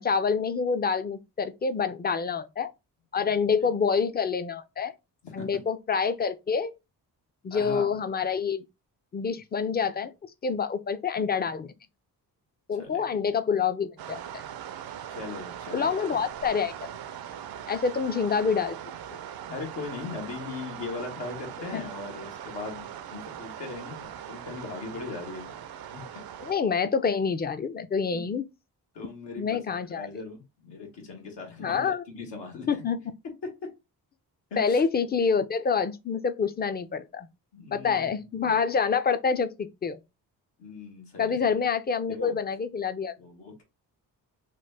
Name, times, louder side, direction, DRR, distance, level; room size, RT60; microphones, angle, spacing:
voice 1, 0.0-2.7 3.1-4.9 5.3-6.7 7.4-8.6 9.1-10.1 10.4-11.7 12.7-14.4 15.7-16.7 17.7-18.8 19.1-19.2 21.7-21.8 26.4-28.4 29.4-30.1 31.6-32.0 32.7-33.1 34.6-37.3 37.7-40.0 41.2-43.1, left 6 dB, 25° left, 0.4 m, -27 dB
voice 2, 5.2-5.6 7.5-7.9 12.8-13.0 15.1-16.2 19.5-25.6 25.9-26.0 28.1-28.2 28.9-32.8 33.2-33.7 34.5-34.8 37.5-38.1 38.4-38.6 40.6-41.3 42.1-42.4 43.2-43.6, left 4 dB, 80° left, 1.3 m, -39 dB
sound 1, 14.0-26.5, right 9 dB, 60° right, 0.5 m, -40 dB
3.1 x 2.1 x 3.3 m
cardioid pair, 60°, 42 cm